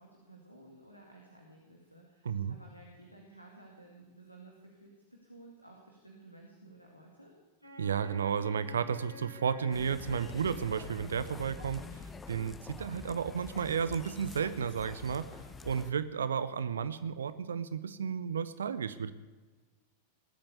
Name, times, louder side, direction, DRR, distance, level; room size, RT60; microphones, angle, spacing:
voice 1, 0.0-7.3, right 2 dB, 90° left, 0 dB, 2.4 m, -55 dB
voice 2, 2.2-2.6 7.8-15.3 15.6-19.1, right 7 dB, 70° right, 14 dB, 0.7 m, -33 dB
Wind instrument woodwind instrument, 7.6-12.0, equal, 90° right, 3.0 m, -51 dB
sound 1, 9.7-15.9, left 4 dB, 15° left, 0.9 m, -47 dB
19.5 x 8.7 x 8.4 m, 1.3 s
figure-of-eight pair, 90°, 0 cm